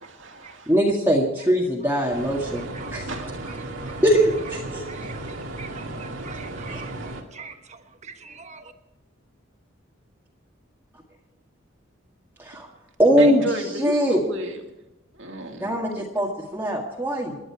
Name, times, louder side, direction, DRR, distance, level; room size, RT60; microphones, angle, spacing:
voice 1, 0.0-0.7 2.0-2.1 3.1-3.3 13.1-14.6 15.2-16.0, right 2 dB, 65° right, 3 dB, 2.5 m, -33 dB
voice 2, 0.7-2.6 2.9-3.1 4.0-4.8 6.7-6.8 12.4-12.7 13.0-13.4 13.8-14.2 15.6-17.4, equal, 10° right, -3 dB, 1.8 m, -21 dB
sound 1, 2.1-7.2, right 2 dB, 80° right, 2.1 m, -35 dB
voice 3, 2.5-3.2 3.5-4.0 4.9-8.7, right 5 dB, 35° right, 6 dB, 1.3 m, -44 dB
28.5 x 11.0 x 4.8 m, 0.94 s
head